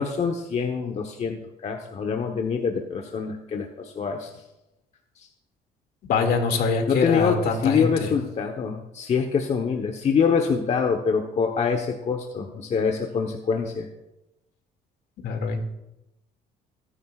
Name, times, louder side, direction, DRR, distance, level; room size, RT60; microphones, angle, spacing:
voice 1, 0.0-4.3 5.2-5.3 6.9-13.9, left 6 dB, 40° left, 3 dB, 1.1 m, -25 dB
voice 2, 6.1-8.1 15.2-15.6, left 4 dB, 70° left, 4 dB, 2.3 m, -24 dB
21.5 x 10.0 x 2.4 m, 0.93 s
cardioid pair, 110°, 17 cm